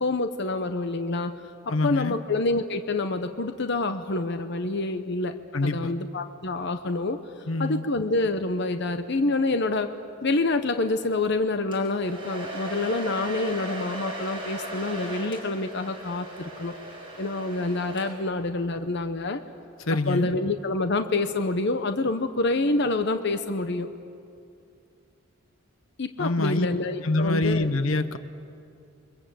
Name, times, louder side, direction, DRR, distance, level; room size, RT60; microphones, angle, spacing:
voice 1, 0.0-1.3 1.8-5.3 5.6-7.2 7.6-9.9 10.2-16.8 17.2-19.4 19.9-23.9 26.0-27.7, left 2 dB, 55° left, 8 dB, 0.9 m, -27 dB
voice 2, 1.7-2.2 5.5-5.9 7.5-7.9 19.8-20.3 26.2-26.7 27.0-28.2, left 2 dB, 80° left, 11 dB, 1.1 m, -25 dB
Domestic sounds home sounds, 11.7-18.4, right 1 dB, 25° right, 6.1 m, -38 dB
29.0 x 23.5 x 7.8 m, 2.5 s
head